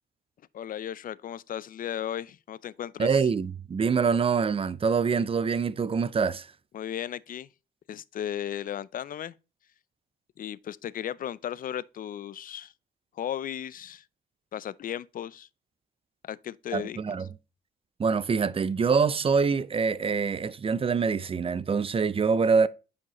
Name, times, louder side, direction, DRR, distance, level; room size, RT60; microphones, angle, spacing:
voice 1, 0.5-3.2 6.7-7.5 7.9-9.3 10.4-12.7 13.1-14.0 14.5-15.5 16.2-17.0, left 10 dB, 45° left, 0.4 m, -35 dB
voice 2, 3.0-6.5 16.7-17.3 18.0-22.7, right 5 dB, 30° right, 0.4 m, -25 dB
9.5 x 4.9 x 3.0 m
cardioid pair, 90°, 20 cm